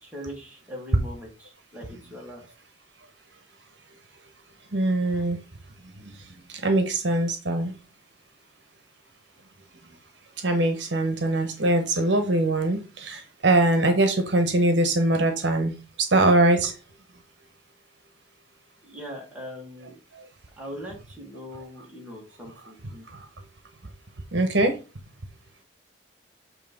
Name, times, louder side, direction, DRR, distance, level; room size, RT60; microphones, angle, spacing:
voice 1, 0.0-2.4 18.8-20.0 20.6-23.0, equal, 10° right, -2 dB, 2.1 m, -41 dB
voice 2, 4.7-5.4 5.8-7.7 9.8-9.9 10.4-16.7 20.1-20.3 23.1-23.3 24.3-24.8, right 2 dB, 70° right, 6 dB, 1.1 m, -23 dB
7.4 x 3.3 x 5.3 m, 0.33 s
head